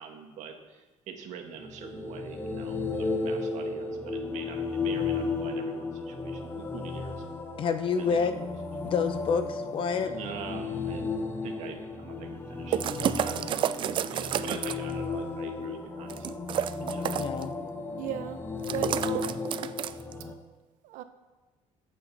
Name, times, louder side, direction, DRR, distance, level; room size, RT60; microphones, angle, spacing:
voice 1, 0.0-7.2 8.0-8.5 10.1-11.1 11.4-12.8 13.1-16.4 16.8-17.2, right 7 dB, 65° right, 4 dB, 1.7 m, -44 dB
sound 1, 1.5-20.3, left 4 dB, 15° left, 1.1 m, -34 dB
voice 2, 7.6-8.4 8.8-10.1 17.2-17.5, left 5 dB, 40° left, 9 dB, 0.8 m, -28 dB
sound 2, 12.7-14.9 16.1-17.4 18.6-20.1, right 10 dB, 40° right, 0.4 m, -30 dB
voice 3, 17.8-18.4 18.7-19.4 20.8-21.0, right 12 dB, 80° right, 9 dB, 0.8 m, -36 dB
14.5 x 8.5 x 4.1 m, 1.3 s
cardioid pair, 155°, 13 cm